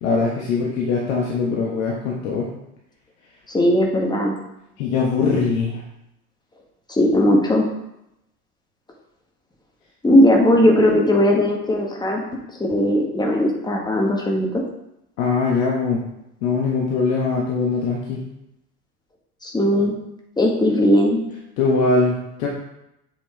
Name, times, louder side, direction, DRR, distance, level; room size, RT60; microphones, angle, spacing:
voice 1, 0.0-2.5 4.8-5.8 15.2-16.0 16.4-18.2 21.6-22.5, left 4 dB, 60° left, -2 dB, 1.5 m, -21 dB
voice 2, 3.5-4.4 6.9-7.7 10.0-12.2 12.6-14.6 19.4-20.0 20.4-21.2, left 1 dB, 10° left, 0 dB, 1.5 m, -18 dB
7.6 x 5.7 x 3.5 m, 0.84 s
figure-of-eight pair, 75°, 45 cm